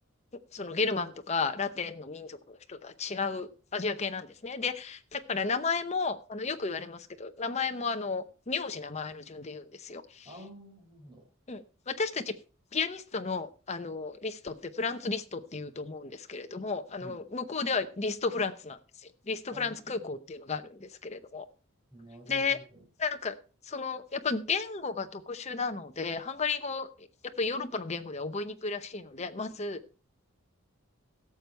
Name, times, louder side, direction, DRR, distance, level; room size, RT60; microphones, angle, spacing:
voice 1, 0.5-10.3 11.5-12.3 12.7-21.5 22.3-22.6 23.0-23.3 23.6-27.1 27.4-29.8, left 4 dB, 30° left, 7 dB, 0.8 m, -33 dB
voice 2, 10.2-11.2 17.0-17.2 19.5-20.1 21.9-22.8, equal, 20° right, 1 dB, 4.6 m, -49 dB
17.0 x 7.0 x 4.5 m, 0.35 s
head